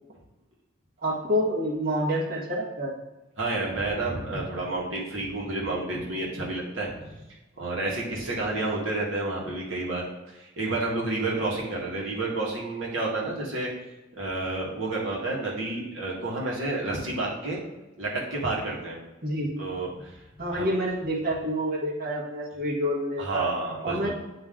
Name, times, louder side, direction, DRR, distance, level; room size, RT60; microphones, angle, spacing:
voice 1, 1.0-2.9 19.2-19.6 20.4-23.5 23.8-24.1, equal, 50° right, -4 dB, 1.4 m, -28 dB
voice 2, 3.4-6.9 7.6-10.0 10.3-13.7 14.1-17.6 18.0-19.0 19.6-20.1 20.5-20.7 23.2-24.1, right 2 dB, 75° right, -4 dB, 1.7 m, -30 dB
9.3 x 3.1 x 3.7 m, 1.0 s
head